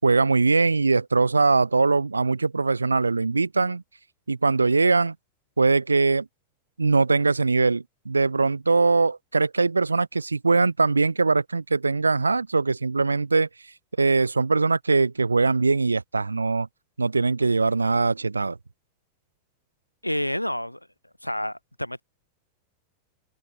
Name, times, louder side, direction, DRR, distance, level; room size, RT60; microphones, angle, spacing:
voice 1, 0.0-3.8 4.3-5.1 5.6-6.3 6.8-13.5 14.0-16.7 17.0-18.6, right 3 dB, 80° right, 7.4 m, -21 dB
voice 2, 20.0-20.8 21.2-22.0, left 1 dB, 90° left, 5.1 m, -29 dB
open air
figure-of-eight pair, 90°, 0 cm